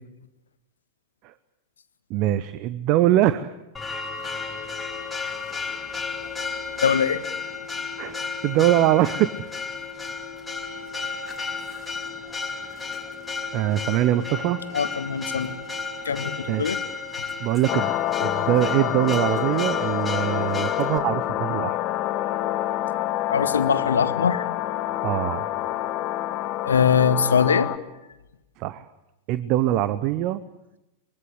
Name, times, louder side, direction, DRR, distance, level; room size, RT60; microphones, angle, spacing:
voice 1, 2.1-3.5 8.0-9.4 13.5-14.6 16.5-16.8 17.4-17.9 18.2-21.8 25.0-25.5 28.6-28.9 29.3-30.4, right 13 dB, 40° right, 15 dB, 0.9 m, -23 dB
Church bell, 3.7-21.0, left 4 dB, 10° left, 2.8 m, -33 dB
voice 2, 6.8-7.2 14.7-15.5 16.0-16.8 23.3-24.5 26.6-27.7, left 6 dB, 70° left, 11 dB, 1.5 m, -22 dB
sound 1, 17.7-27.8, left 14 dB, 35° left, 1.4 m, -27 dB
24.5 x 22.5 x 8.1 m, 0.95 s
figure-of-eight pair, 90°, 0 cm